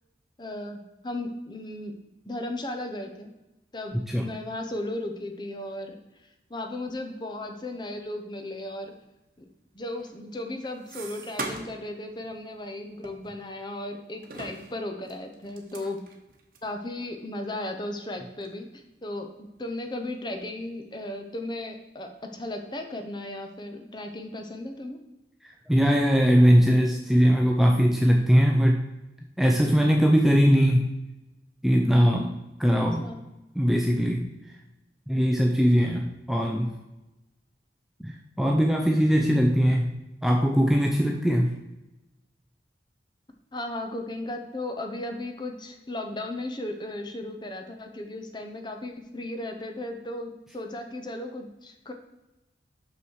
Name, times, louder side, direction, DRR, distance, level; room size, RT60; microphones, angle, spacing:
voice 1, 0.4-1.9 2.3-3.3 3.7-6.0 6.5-8.9 9.4-9.5 9.7-16.0 16.6-25.0 32.8-33.2 43.5-51.9, left 1 dB, 25° left, 4 dB, 0.8 m, -35 dB
sound 1, 9.9-11.9 12.2-12.4 13.0-13.9 14.2-16.7 17.3-17.4 17.6-17.7 18.4-18.6 19.1-19.8 20.1-20.8, right 3 dB, 50° right, 1.0 m, -41 dB
voice 2, 25.4-28.8 29.4-30.9 31.6-32.3 32.6-33.1 33.5-34.3 35.1-36.7 38.0-39.9 40.2-41.5, equal, ahead, 1 dB, 0.5 m, -21 dB
6.4 x 5.9 x 4.6 m, 0.98 s
head